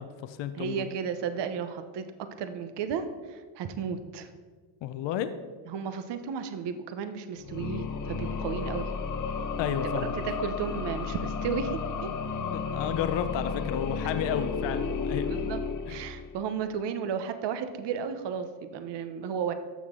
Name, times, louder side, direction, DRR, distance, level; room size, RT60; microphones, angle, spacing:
voice 1, 0.0-0.9 4.8-5.3 9.6-10.2 12.5-15.4 15.9-16.0, left 10 dB, 65° left, 10 dB, 0.7 m, -32 dB
voice 2, 0.6-2.0 2.4-4.3 5.7-8.9 9.9-12.1 15.3-15.6 15.9-19.5, right 7 dB, 60° right, 9 dB, 0.9 m, -33 dB
sound 1, 7.4-16.5, left 5 dB, 40° left, 0.9 m, -32 dB
14.0 x 6.2 x 3.7 m, 1.5 s
cardioid pair, 110°, 48 cm